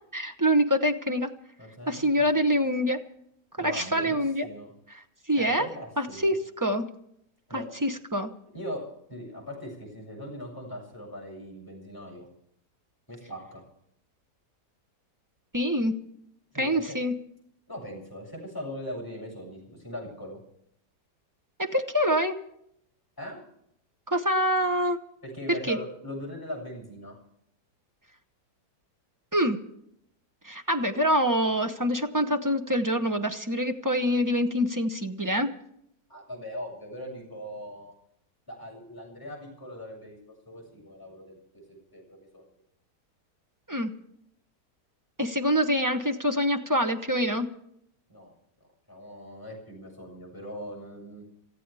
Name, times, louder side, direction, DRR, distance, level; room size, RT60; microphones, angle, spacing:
voice 1, 0.1-1.3 1.9-3.0 3.6-4.5 5.3-5.7 6.0-6.9 7.5-8.3 15.5-16.0 16.6-17.1 21.6-22.3 24.1-25.0 25.5-25.8 29.3-29.6 30.4-35.5 43.7-43.9 45.2-47.5, equal, 15° right, 5 dB, 0.7 m, -25 dB
voice 2, 1.6-2.5 3.6-4.7 5.3-6.3 7.5-7.6 8.5-8.8 9.1-12.3 13.1-13.6 16.5-17.0 17.7-20.4 23.2-23.4 25.2-27.2 36.1-37.9 38.5-40.2 40.5-42.5 48.1-48.3 48.9-51.3, equal, 10° left, -3 dB, 7.1 m, -40 dB
28.5 x 14.5 x 3.4 m, 0.72 s
omnidirectional pair, 1.8 m